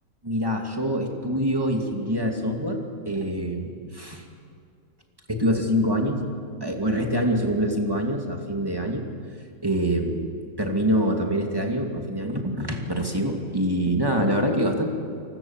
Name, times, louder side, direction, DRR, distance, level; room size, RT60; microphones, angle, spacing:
voice 1, 0.2-2.8 3.1-4.2 5.3-6.2 6.6-9.0 9.6-10.2 10.6-14.9, equal, 15° right, 2 dB, 2.5 m, -25 dB
29.5 x 19.5 x 7.3 m, 2.3 s
omnidirectional pair, 1.6 m